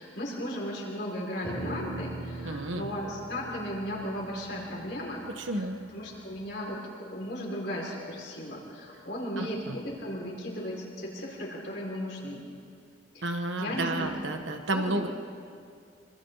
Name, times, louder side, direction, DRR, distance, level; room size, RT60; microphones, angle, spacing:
voice 1, 0.0-5.2 5.5-12.4 13.1-13.3 13.6-14.4 14.7-15.0, equal, 55° left, -3 dB, 6.0 m, -36 dB
sound 1, 1.4-6.0, right 2 dB, 10° left, 4.1 m, -41 dB
voice 2, 2.4-2.9 5.4-5.8 9.4-9.8 13.2-15.1, right 2 dB, 75° right, 5 dB, 1.6 m, -31 dB
27.0 x 26.0 x 4.2 m, 2.3 s
head